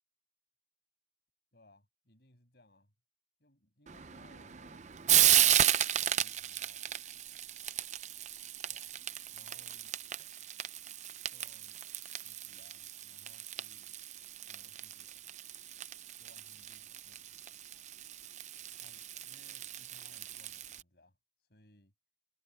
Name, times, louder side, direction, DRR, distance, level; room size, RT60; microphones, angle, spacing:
voice 1, 1.5-2.9 3.4-7.2 8.7-8.9 9.3-9.9 11.3-11.8 12.1-13.9 14.5-15.3 16.2-17.8 18.8-21.9, left 1 dB, 65° left, 6.7 m, -65 dB
Frying (food), 3.9-20.8, right 11 dB, 40° right, 0.6 m, -34 dB
head